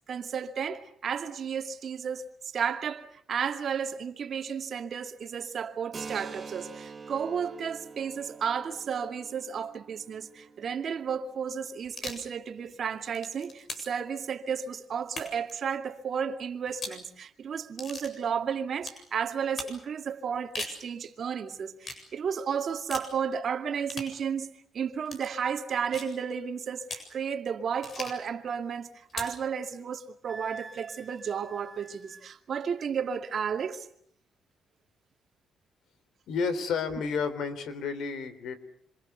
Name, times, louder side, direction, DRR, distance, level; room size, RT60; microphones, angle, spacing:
voice 1, 0.1-33.9, right 7 dB, 55° right, 2.4 m, -33 dB
Keyboard (musical), 5.9-13.3, right 5 dB, 35° right, 2.2 m, -47 dB
sound 1, 11.8-12.3 12.9-14.0 15.1-15.5 16.7-17.0 17.8-18.1 18.8-19.0 19.6-19.8 20.4-20.8 21.8-22.0 22.9-23.1 23.9-24.1 25.1-25.3 25.9-26.2 26.9-27.1 27.8-28.3 29.1-29.4, left 3 dB, 45° left, 7.9 m, -39 dB
Wind instrument woodwind instrument, 30.3-32.3, right 2 dB, 10° right, 3.1 m, -47 dB
voice 2, 36.3-38.6, left 5 dB, 75° left, 3.6 m, -31 dB
27.0 x 26.5 x 6.9 m
cardioid pair, 90°, 0 cm